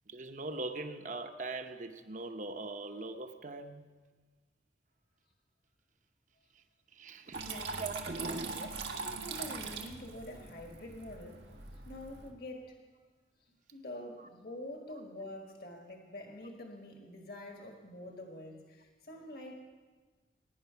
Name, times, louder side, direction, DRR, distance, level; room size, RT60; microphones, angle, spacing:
voice 1, 0.1-3.9 6.9-8.6 14.2-14.3, right 2 dB, 45° right, 8 dB, 0.9 m, -41 dB
Water tap faucet / Trickle dribble, 7.3-12.3, right 4 dB, 85° right, 1.6 m, -42 dB
voice 2, 7.4-7.9 8.4-11.4 11.8-12.8 13.7-19.5, left 1 dB, 55° left, 2 dB, 1.6 m, -46 dB
21.0 x 9.9 x 5.7 m, 1.4 s
head